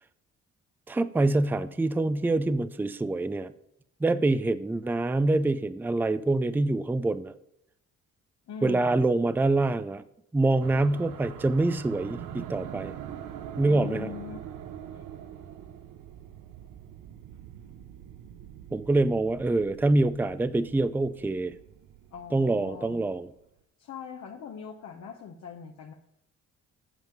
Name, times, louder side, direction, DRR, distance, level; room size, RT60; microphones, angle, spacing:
voice 1, 0.9-3.5 4.0-7.3 8.6-10.0 10.3-13.0 13.6-14.1 18.7-21.5 22.3-23.3, right 2 dB, 5° right, 13 dB, 0.4 m, -25 dB
voice 2, 8.5-9.1 13.6-14.4 14.9-15.0 22.1-23.1 23.8-25.9, left 7 dB, 60° left, 2 dB, 1.0 m, -41 dB
sound 1, 10.6-23.2, right 9 dB, 85° right, 0.8 m, -44 dB
8.2 x 7.4 x 5.2 m, 0.78 s
cardioid pair, 90°, 30 cm